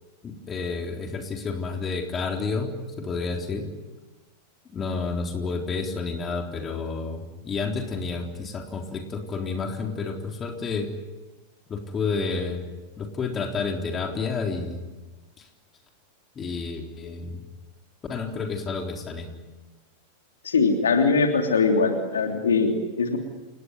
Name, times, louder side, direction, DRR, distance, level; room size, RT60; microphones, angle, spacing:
voice 1, 0.2-2.7 3.0-3.7 4.7-10.9 11.7-12.7 13.0-14.8 15.4-15.5 16.4-17.4 18.1-19.3, left 4 dB, 25° left, 3 dB, 3.9 m, -30 dB
voice 2, 20.4-23.2, left 4 dB, 70° left, 4 dB, 3.2 m, -21 dB
28.5 x 19.0 x 9.5 m, 1.2 s
figure-of-eight pair, 90°, 0 cm